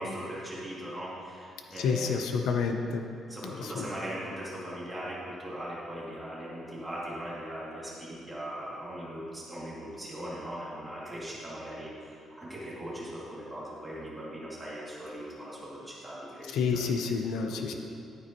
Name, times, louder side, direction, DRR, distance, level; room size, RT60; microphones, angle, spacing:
voice 1, 0.0-2.3 3.3-16.5 16.7-16.8 17.5-17.7, equal, 10° right, -8 dB, 2.5 m, -39 dB
voice 2, 1.7-3.1 3.4-3.9 16.4-17.7, left 5 dB, 80° left, 4 dB, 0.6 m, -29 dB
11.5 x 9.4 x 3.0 m, 2.4 s
cardioid pair, 155°, 0 cm